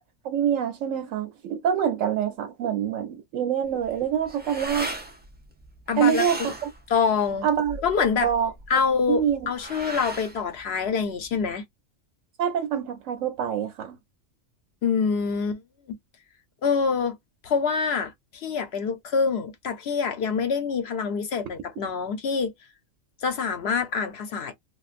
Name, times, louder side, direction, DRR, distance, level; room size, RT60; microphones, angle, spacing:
voice 1, 0.2-4.9 6.0-6.7 7.4-7.8 8.2-8.5 9.1-9.5 12.4-14.0, right 8 dB, 90° right, 1.0 m, -25 dB
sound 1, 3.6-11.5, right 1 dB, 15° right, 0.3 m, -38 dB
voice 2, 5.9-6.2 6.9-7.5 7.8-8.3 8.7-11.6 14.8-15.6 16.6-17.2 17.4-22.5 23.2-24.5, left 5 dB, 60° left, 1.0 m, -25 dB
3.2 x 2.5 x 2.5 m
omnidirectional pair, 1.3 m